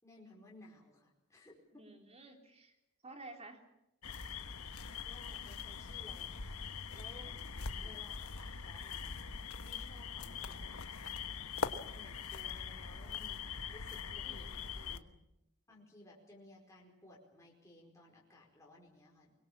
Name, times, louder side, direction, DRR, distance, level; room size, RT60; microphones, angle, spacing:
voice 1, 0.0-1.8 2.2-2.3 5.0-6.6 6.9-7.4 7.8-11.0 11.9-13.4 13.7-14.5 14.8-15.0 15.7-19.3, left 1 dB, 15° left, -2 dB, 4.8 m, -58 dB
voice 2, 1.7-2.8 3.0-3.6 7.5-8.0 14.2-15.2, right 2 dB, 30° right, 4 dB, 3.4 m, -54 dB
sound 1, 4.0-15.0, left 5 dB, 75° left, 1.2 m, -42 dB
24.0 x 21.5 x 7.4 m, 0.87 s
head